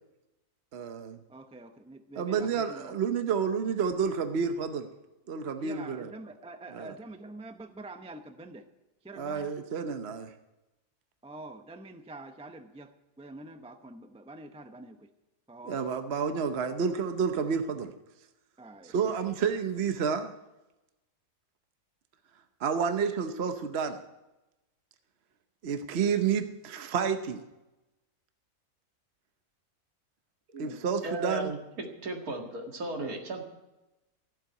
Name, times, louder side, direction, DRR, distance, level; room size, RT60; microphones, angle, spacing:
voice 1, 0.7-1.2 2.2-4.9 5.3-6.1 6.7-6.9 9.1-10.3 15.6-17.9 18.8-20.3 22.6-24.0 25.6-27.4 30.6-31.5, right 6 dB, 50° right, 7 dB, 1.0 m, -30 dB
voice 2, 1.3-2.9 5.6-8.6 9.0-9.5 11.2-12.9 13.2-15.0 15.5-15.8 18.6-18.9, right 2 dB, 5° right, 7 dB, 0.5 m, -45 dB
voice 3, 31.0-33.4, right 2 dB, 70° right, 2 dB, 2.4 m, -36 dB
15.0 x 7.7 x 9.1 m, 1.0 s
omnidirectional pair, 1.6 m